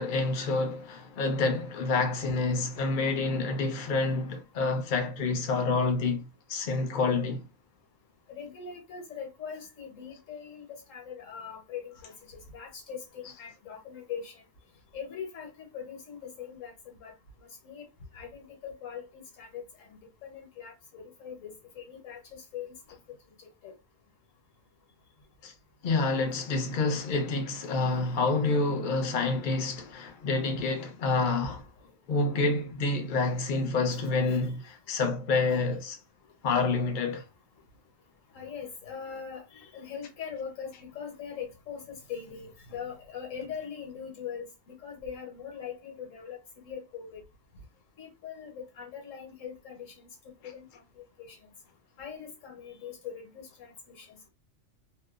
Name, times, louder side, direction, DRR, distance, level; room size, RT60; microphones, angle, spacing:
voice 1, 0.0-7.4 25.4-25.5 25.8-31.7 32.1-36.0 36.4-37.2, left 3 dB, 50° left, 0.6 m, -28 dB
voice 2, 8.3-14.4 14.9-17.1 17.6-17.9 18.1-22.7 23.6-23.7 34.2-34.5 38.3-47.2 48.0-50.1 50.4-50.7 51.0-51.4 52.0-54.3, left 7 dB, 75° left, 1.3 m, -42 dB
2.7 x 2.2 x 2.4 m
omnidirectional pair, 1.4 m